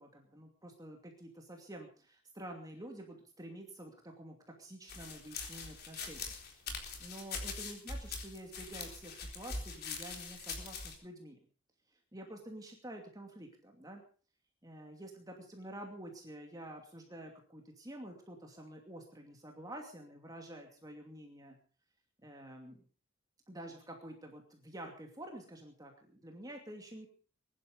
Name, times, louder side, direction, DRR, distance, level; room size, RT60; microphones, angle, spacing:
voice 1, 0.0-6.2 6.6-11.4 12.1-14.0 14.6-21.6 22.2-22.8 23.5-27.1, right 1 dB, 20° right, 2 dB, 2.6 m, -49 dB
sound 1, 4.9-10.9, left 4 dB, 50° left, 4.1 m, -42 dB
21.5 x 12.0 x 5.4 m, 0.40 s
head